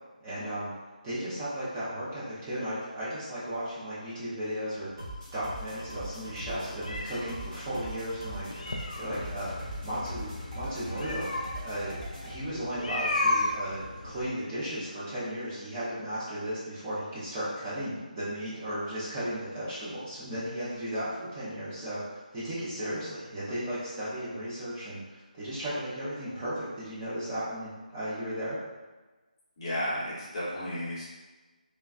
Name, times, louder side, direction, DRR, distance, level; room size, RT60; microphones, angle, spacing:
voice 1, 0.2-0.7 1.0-4.9 5.3-8.5 9.0-10.3 10.5-11.3 11.6-28.6, equal, 15° right, -11 dB, 0.5 m, -35 dB
sound 1, 4.8-14.3, left 1 dB, 55° left, 0.4 m, -35 dB
sound 2, 5.0-12.4, equal, 35° right, 1.1 m, -41 dB
voice 2, 29.6-31.1, equal, 30° left, -8 dB, 0.8 m, -33 dB
3.2 x 2.3 x 2.3 m, 1.2 s
figure-of-eight pair, 165°, 5 cm